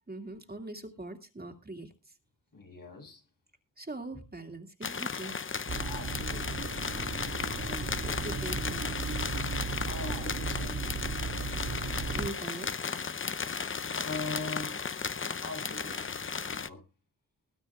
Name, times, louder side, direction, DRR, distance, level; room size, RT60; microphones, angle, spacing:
voice 1, 0.1-2.1 3.8-5.4 7.7-8.9 12.1-12.7, right 2 dB, 30° right, 2.4 m, -42 dB
voice 2, 2.5-3.2 5.8-6.8 9.9-11.5 13.9-14.8 15.4-16.2 16.5-16.8, left 3 dB, 75° left, 6.9 m, -41 dB
sound 1, 4.8-16.7, left 5 dB, 40° left, 0.7 m, -35 dB
sound 2, 5.7-12.3, right 4 dB, 50° right, 1.8 m, -36 dB
20.0 x 9.0 x 3.6 m
wide cardioid pair, 100°, 33 cm